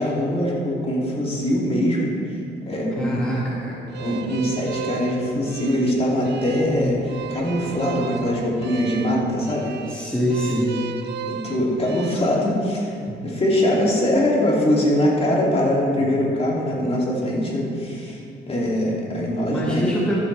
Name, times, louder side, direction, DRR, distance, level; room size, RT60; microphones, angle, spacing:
voice 1, 0.0-2.3 2.6-3.2 4.0-10.1 11.3-12.9 13.2-18.2 18.5-19.9, equal, 30° left, -4 dB, 2.7 m, -22 dB
sound 1, 2.9-8.2, left 1 dB, 45° left, 2.2 m, -37 dB
voice 2, 3.0-3.8 9.9-10.7 13.1-13.2 16.0-16.1 19.5-20.2, equal, 5° left, -7 dB, 2.0 m, -25 dB
sound 2, 3.9-12.1, right 8 dB, 60° right, 0.5 m, -35 dB
14.0 x 8.1 x 3.4 m, 2.4 s
cardioid pair, 90°, 20 cm